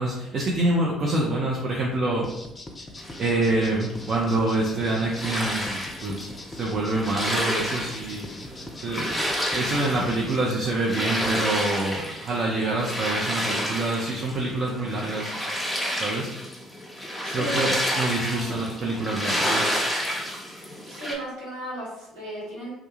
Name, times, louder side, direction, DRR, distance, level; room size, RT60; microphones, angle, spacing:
voice 1, 0.0-2.3 3.2-9.1 9.5-15.3 16.0-16.3 17.3-19.7, right 2 dB, 50° right, -2 dB, 0.5 m, -26 dB
sound 1, 2.2-10.4, left 2 dB, 25° left, 0.5 m, -41 dB
sound 2, 3.0-21.1, equal, 5° left, 0.9 m, -30 dB
voice 2, 17.2-17.7 18.1-18.6 20.8-22.7, right 1 dB, 75° right, -8 dB, 1.3 m, -35 dB
2.4 x 2.2 x 3.0 m, 0.89 s
hypercardioid pair, 50°, 0 cm